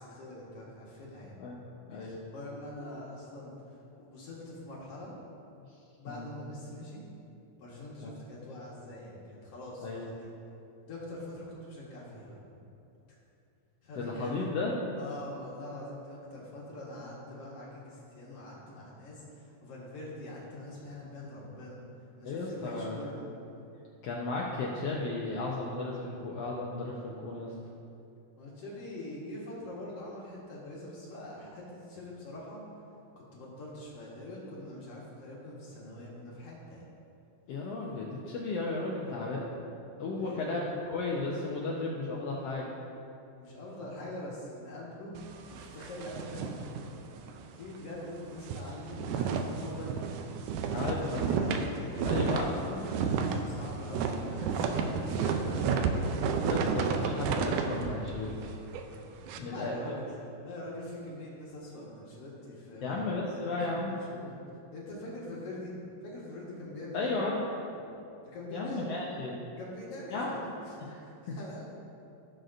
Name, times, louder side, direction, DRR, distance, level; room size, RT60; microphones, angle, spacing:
voice 1, 0.0-1.4 1.9-5.1 6.0-7.0 7.6-10.3 10.9-12.6 13.8-14.6 15.0-21.8 22.2-23.3 28.4-32.6 33.2-36.8 40.2-40.5 43.4-45.2 45.5-46.9 47.5-50.1 50.8-52.1 53.0-55.8 59.2-64.4 64.7-65.8 66.0-67.1 68.2-69.0 69.6-71.6, left 1 dB, 55° left, -5 dB, 2.1 m, -44 dB
voice 2, 1.9-2.2 6.1-6.4 8.0-8.1 9.8-10.1 14.0-14.7 22.2-23.0 24.0-27.5 37.5-39.5 40.0-40.6 40.9-42.7 50.7-51.3 52.0-52.8 56.5-58.5 59.4-60.0 62.8-63.9 66.9-67.4 67.7-67.8 68.5-69.4 70.1-70.3 71.3-71.4, left 3 dB, 80° left, -3 dB, 1.4 m, -34 dB
sound 1, 45.1-47.4 47.7-47.9 48.2-59.4, right 5 dB, 80° right, 2.0 m, -32 dB
17.0 x 6.4 x 2.6 m, 2.7 s
omnidirectional pair, 3.9 m